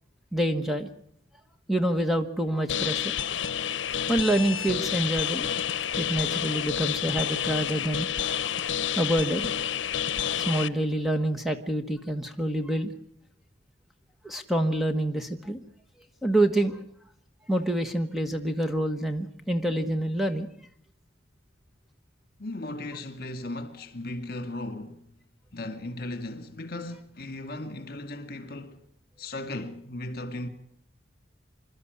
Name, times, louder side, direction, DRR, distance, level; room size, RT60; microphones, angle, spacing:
voice 1, 0.3-0.9 1.7-3.2 4.1-5.5 6.0-8.1 8.4-8.5 9.0-9.5 10.4-12.9 14.2-15.6 16.2-16.8 17.5-20.5, right 1 dB, ahead, 1.3 m, -27 dB
sound 1, 2.7-10.7, left 9 dB, 75° left, 0.8 m, -29 dB
voice 2, 22.4-25.0 25.5-28.8 29.2-30.5, left 2 dB, 50° left, 2.3 m, -36 dB
26.5 x 13.0 x 9.7 m
head